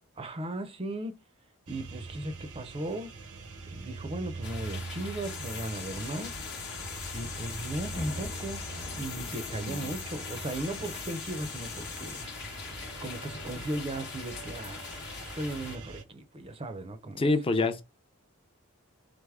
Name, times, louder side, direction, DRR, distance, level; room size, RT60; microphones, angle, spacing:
voice 1, 0.2-1.2 1.7-3.1 3.7-6.4 7.1-8.6 9.0-12.2 13.0-15.0 15.3-17.2, right 1 dB, 25° right, 0.5 m, -37 dB
sound 1, 1.7-16.0, right 4 dB, 90° right, 0.8 m, -43 dB
sound 2, 4.4-15.8, left 5 dB, 55° left, 0.9 m, -42 dB
sound 3, 5.2-12.2, left 7 dB, 80° left, 1.1 m, -44 dB
voice 2, 17.2-17.8, left 3 dB, 25° left, 0.5 m, -26 dB
3.8 x 3.3 x 3.5 m
head